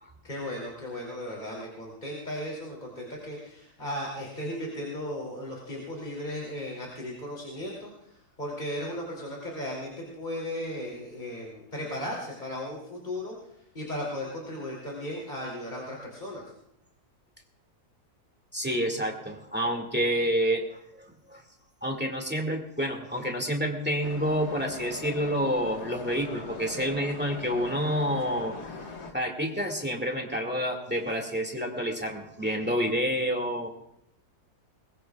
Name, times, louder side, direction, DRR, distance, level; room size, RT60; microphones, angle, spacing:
voice 1, 0.2-7.9 8.4-13.3 13.7-16.4, left 1 dB, 25° left, -3 dB, 3.1 m, -36 dB
voice 2, 18.5-20.7 21.3-21.4 21.8-33.7, equal, 5° right, 1 dB, 2.0 m, -29 dB
sound 1, 24.0-29.1, left 4 dB, 75° left, 2.0 m, -41 dB
21.5 x 21.0 x 2.4 m, 0.77 s
omnidirectional pair, 1.7 m